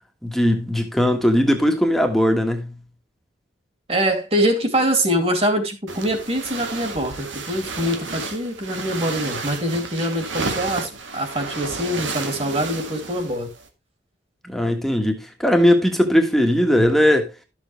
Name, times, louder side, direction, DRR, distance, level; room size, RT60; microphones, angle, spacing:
voice 1, 0.2-2.7 14.4-17.3, equal, ahead, 1.6 m, -19 dB
voice 2, 3.9-13.5, equal, 30° right, 2.5 m, -24 dB
sound 1, 5.9-13.7, right 3 dB, 90° right, 2.0 m, -32 dB
13.0 x 7.2 x 3.2 m
head